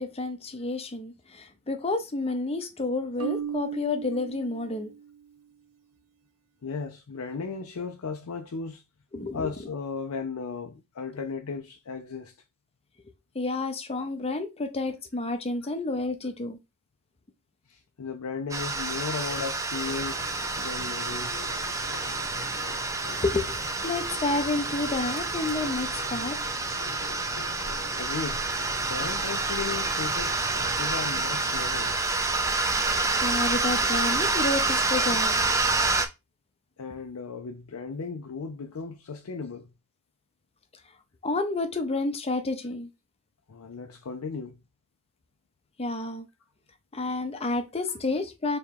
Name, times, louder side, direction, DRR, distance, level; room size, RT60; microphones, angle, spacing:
voice 1, 0.0-4.9 9.1-9.5 13.3-16.6 23.2-23.5 23.8-26.4 33.2-35.4 41.2-42.9 45.8-46.2 46.9-48.6, left 2 dB, 25° left, 0.7 m, -30 dB
Marimba xylophone, 3.2-5.2, right 8 dB, 90° right, 0.3 m, -36 dB
voice 2, 6.6-8.8 9.3-12.4 14.0-14.1 15.6-15.7 17.7-20.3 20.6-21.4 27.9-28.4 28.8-30.4 30.8-31.9 36.8-39.7 43.5-44.6, left 5 dB, 70° left, 0.5 m, -36 dB
sound 1, 18.5-36.1, right 3 dB, 15° right, 0.5 m, -28 dB
sound 2, 19.8-31.9, left 3 dB, 90° left, 1.0 m, -44 dB
3.5 x 3.0 x 4.6 m
head